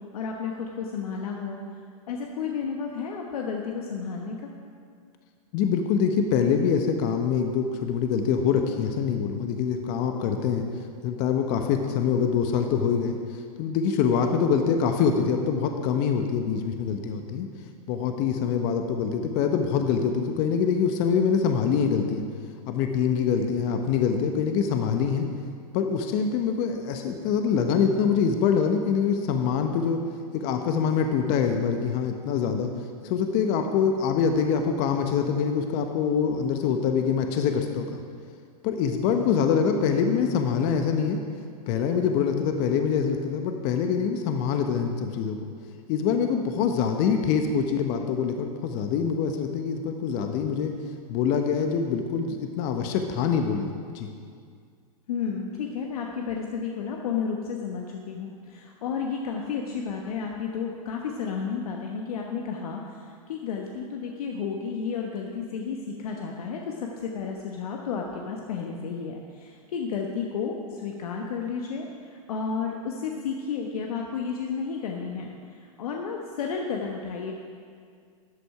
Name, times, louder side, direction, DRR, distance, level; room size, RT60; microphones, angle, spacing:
voice 1, 0.1-1.6 2.1-4.4 55.1-75.3 75.8-77.3, left 6 dB, 75° left, 1 dB, 1.1 m, -32 dB
voice 2, 5.5-10.7 11.0-17.5 17.9-22.2 22.7-25.3 25.7-30.0 30.3-32.7 33.0-38.0 38.6-41.2 41.7-45.5 45.9-50.7 51.1-54.1, left 6 dB, 45° left, 5 dB, 1.0 m, -25 dB
13.0 x 8.2 x 4.8 m, 2.2 s
hypercardioid pair, 115°, 19 cm